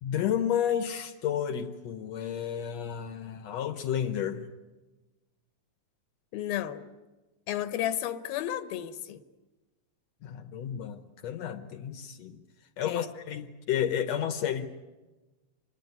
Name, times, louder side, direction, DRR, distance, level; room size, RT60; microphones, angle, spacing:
voice 1, 0.0-4.5 10.2-12.4 12.8-14.7, left 9 dB, 70° left, 10 dB, 1.7 m, -31 dB
voice 2, 6.3-6.9 7.5-9.2 12.8-13.1, left 12 dB, 85° left, 11 dB, 2.9 m, -32 dB
26.5 x 20.0 x 9.4 m, 1.2 s
omnidirectional pair, 4.3 m